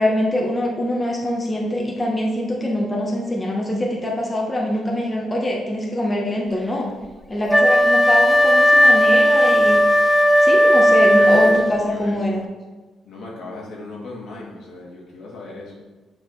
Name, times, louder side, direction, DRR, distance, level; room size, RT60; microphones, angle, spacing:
voice 1, 0.0-6.9 7.3-10.2 10.4-12.4, left 1 dB, 20° left, -2 dB, 1.2 m, -23 dB
Wind instrument woodwind instrument, 7.5-11.9, equal, 5° right, 0.4 m, -15 dB
voice 2, 11.0-12.4 13.1-15.7, left 2 dB, 70° left, -3 dB, 2.1 m, -36 dB
6.8 x 4.1 x 5.2 m, 1.2 s
cardioid pair, 90°, 0 cm